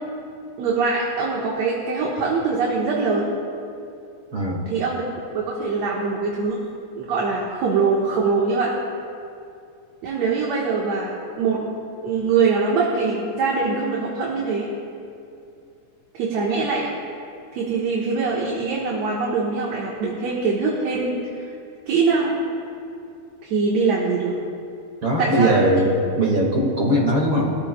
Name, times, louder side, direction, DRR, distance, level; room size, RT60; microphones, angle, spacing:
voice 1, 0.6-3.3 4.7-5.0 5.3-6.6 7.0-8.7 10.0-11.6 12.0-14.7 16.1-16.9 17.5-21.5 21.9-22.4 23.4-24.4 25.2-25.6, right 4 dB, 65° right, -4 dB, 2.5 m, -23 dB
voice 2, 4.3-4.7 25.0-27.5, right 1 dB, 45° right, -3 dB, 2.4 m, -20 dB
23.5 x 13.5 x 2.3 m, 2.5 s
omnidirectional pair, 3.5 m